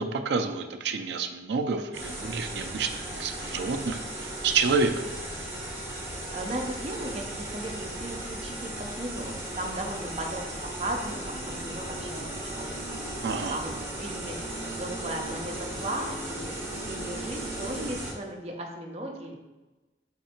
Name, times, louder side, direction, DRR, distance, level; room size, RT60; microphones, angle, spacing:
voice 1, 0.0-5.0 13.2-13.6, right 4 dB, 75° right, 5 dB, 0.4 m, -29 dB
sound 1, 1.9-18.1, right 1 dB, 15° right, 1.2 m, -37 dB
voice 2, 6.0-16.5 16.8-19.4, right 1 dB, 35° right, 1 dB, 0.6 m, -37 dB
sound 2, 11.0-17.9, right 2 dB, 60° left, 1.1 m, -42 dB
3.6 x 3.2 x 4.4 m, 1.1 s
head